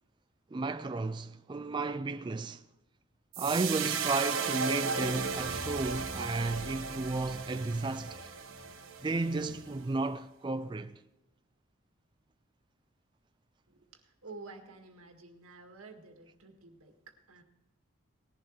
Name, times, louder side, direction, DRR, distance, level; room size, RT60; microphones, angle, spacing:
voice 1, 0.5-2.6 3.4-8.3 9.0-11.0, right 3 dB, 20° right, 0.3 m, -33 dB
sound 1, 3.3-9.7, right 5 dB, 70° right, 1.3 m, -36 dB
voice 2, 13.7-17.4, right 3 dB, 90° right, 1.9 m, -51 dB
19.0 x 11.0 x 3.2 m
head